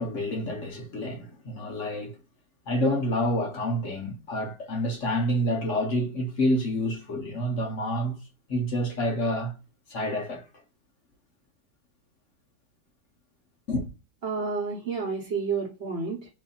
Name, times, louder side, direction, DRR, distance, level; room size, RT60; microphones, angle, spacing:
voice 1, 0.0-2.1 2.7-8.1 8.5-9.5 9.9-10.4 13.7-13.9, equal, 50° left, 1.2 m, -28 dB
voice 2, 14.2-16.3, right 5 dB, 40° right, 1.2 m, -30 dB
5.3 x 2.7 x 2.3 m
omnidirectional pair, 2.0 m